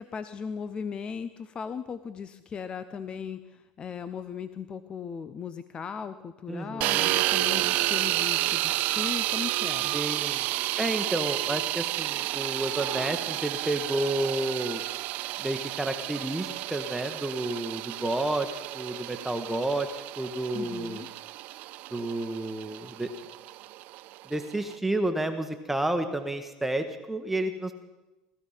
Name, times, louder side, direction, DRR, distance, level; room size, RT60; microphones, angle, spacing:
voice 1, 0.0-10.0 20.5-21.1, left 6 dB, 35° left, 12 dB, 0.7 m, -37 dB
voice 2, 6.5-7.1 9.9-10.4 10.8-14.8 15.4-18.5 18.7-21.0 21.9-23.1 24.2-27.7, right 1 dB, 5° right, 6 dB, 1.2 m, -30 dB
Belt grinder - Arboga - Off, 6.8-24.7, right 17 dB, 60° right, 0.5 m, -31 dB
18.5 x 13.0 x 5.7 m, 1.1 s
supercardioid pair, 105°, 3 cm